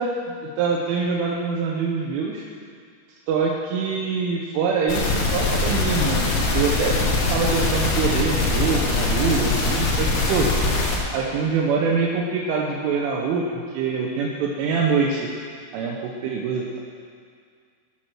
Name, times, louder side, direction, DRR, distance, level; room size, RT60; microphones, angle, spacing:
voice 1, 0.0-2.5 3.3-7.0 7.3-10.5 11.1-15.3 15.7-16.8, right 5 dB, 85° right, -1 dB, 3.5 m, -24 dB
sound 1, 4.9-11.0, left 3 dB, 70° left, 4.3 m, -22 dB
16.5 x 8.8 x 6.1 m, 2.1 s
omnidirectional pair, 5.6 m